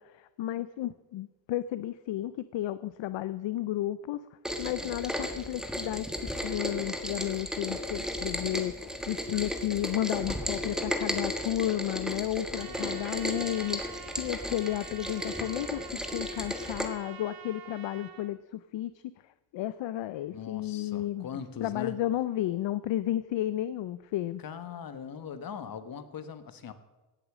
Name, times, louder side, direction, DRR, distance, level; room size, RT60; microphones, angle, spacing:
voice 1, 0.0-4.2 4.6-6.1 6.3-13.8 14.1-15.8 16.1-19.1 19.5-21.3 21.6-24.4, left 13 dB, 65° left, 15 dB, 0.6 m, -32 dB
Rain, 4.4-16.9, equal, ahead, 1.5 m, -35 dB
Trumpet, 12.5-18.3, right 9 dB, 45° right, 1.2 m, -47 dB
voice 2, 12.6-13.0 20.3-21.9 24.4-26.7, left 7 dB, 45° left, 11 dB, 1.2 m, -41 dB
17.0 x 8.2 x 7.3 m, 1.1 s
cardioid pair, 120°, 48 cm